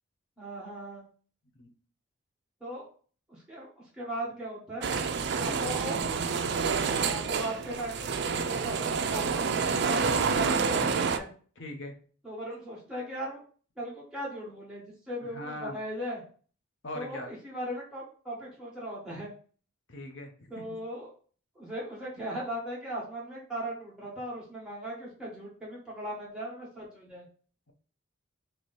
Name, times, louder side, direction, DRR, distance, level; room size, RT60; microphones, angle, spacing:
voice 1, 0.4-1.1 2.6-2.9 3.3-3.7 4.0-4.9 5.4-6.0 6.7-11.3 12.2-13.4 13.8-16.2 16.9-19.3 20.5-21.1 21.5-27.2, right 1 dB, 5° right, -7 dB, 1.4 m, -38 dB
sound 1, 4.8-11.2, right 5 dB, 55° right, 0.3 m, -28 dB
voice 2, 9.6-9.9 10.7-11.1 11.6-11.9 15.2-15.8 16.8-17.3 19.9-20.8, left 1 dB, 60° left, 3 dB, 0.8 m, -41 dB
3.1 x 3.0 x 4.1 m, 0.43 s
head